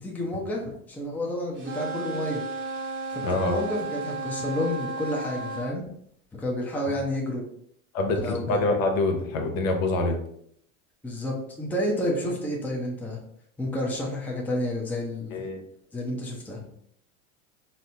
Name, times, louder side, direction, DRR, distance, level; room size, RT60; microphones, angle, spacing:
voice 1, 0.0-2.4 3.1-5.9 6.4-7.4 8.2-8.6 11.0-13.2 13.6-15.4 15.9-16.6, left 1 dB, 5° left, -2 dB, 0.6 m, -30 dB
sound 1, 1.6-5.7, right 3 dB, 30° right, 0.7 m, -33 dB
voice 2, 3.2-3.6 6.8-6.9 7.9-10.2 15.3-15.6, left 2 dB, 70° left, 3 dB, 0.9 m, -25 dB
4.1 x 2.1 x 2.7 m, 0.69 s
hypercardioid pair, 100°, 42 cm